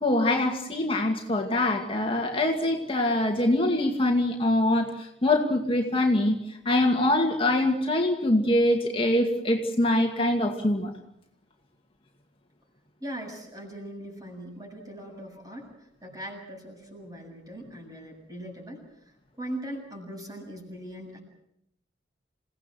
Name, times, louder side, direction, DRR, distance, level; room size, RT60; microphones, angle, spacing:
voice 1, 0.0-10.9, left 1 dB, 30° left, 2 dB, 2.2 m, -24 dB
voice 2, 13.0-18.8 19.4-21.2, right 1 dB, 20° right, 2 dB, 7.5 m, -40 dB
28.5 x 17.5 x 7.7 m, 0.78 s
head